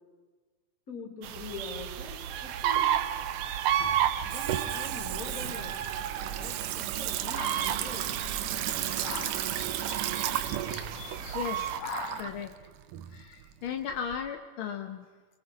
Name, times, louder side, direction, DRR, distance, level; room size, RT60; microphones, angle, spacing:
voice 1, 0.9-2.9 4.2-8.1, left 3 dB, 25° left, 1 dB, 4.1 m, -43 dB
sound 1, 1.2-11.8, right 10 dB, 70° right, 1.6 m, -32 dB
Water tap faucet / Sink (filling or washing), 2.4-14.2, right 12 dB, 90° right, 2.4 m, -35 dB
sound 2, 7.4-12.5, left 6 dB, 85° left, 3.1 m, -43 dB
voice 2, 11.3-11.8 12.2-12.5 13.1-15.1, left 7 dB, 65° left, 6 dB, 1.4 m, -36 dB
27.0 x 23.5 x 4.9 m, 1.3 s
omnidirectional pair, 3.5 m